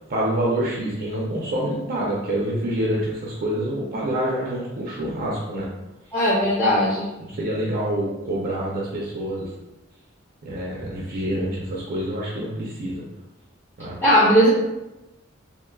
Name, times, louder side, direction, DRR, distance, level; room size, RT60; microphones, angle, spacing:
voice 1, 0.1-5.7 6.3-6.8 7.2-9.5 10.4-13.0 13.8-14.0, right 1 dB, 45° right, -4 dB, 0.5 m, -27 dB
voice 2, 6.1-7.1 14.0-14.5, equal, 10° left, -8 dB, 0.5 m, -18 dB
3.6 x 2.5 x 2.2 m, 0.98 s
head